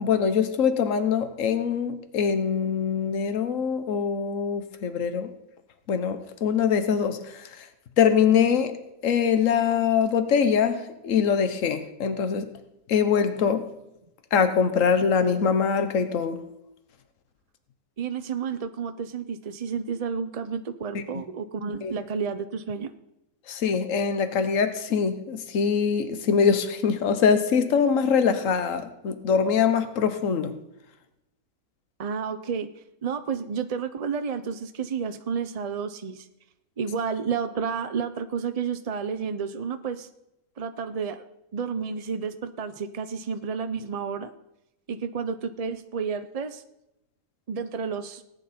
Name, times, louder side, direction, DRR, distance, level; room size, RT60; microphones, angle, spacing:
voice 1, 0.0-5.3 5.9-7.4 8.0-8.7 9.0-12.5 12.9-13.7 14.3-16.4 20.9-21.0 21.8-21.9 23.5-30.6, left 6 dB, 65° left, 9 dB, 1.4 m, -23 dB
voice 2, 18.0-22.9 32.0-32.7 33.0-36.3 36.8-40.1 40.6-41.2 41.5-44.3 44.9-46.6 47.5-48.2, right 6 dB, 45° right, 9 dB, 0.4 m, -31 dB
18.5 x 9.9 x 4.3 m, 0.88 s
omnidirectional pair, 1.5 m